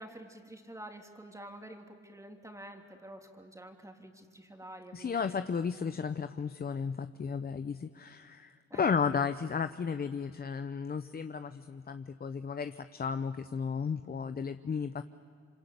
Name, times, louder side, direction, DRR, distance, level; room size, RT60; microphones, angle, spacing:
voice 1, 0.0-5.3 8.7-8.9, right 1 dB, 10° right, 3 dB, 3.1 m, -48 dB
voice 2, 4.9-15.0, left 6 dB, 30° left, 11 dB, 0.8 m, -34 dB
27.5 x 25.5 x 8.3 m, 2.3 s
cardioid pair, 90°, 30 cm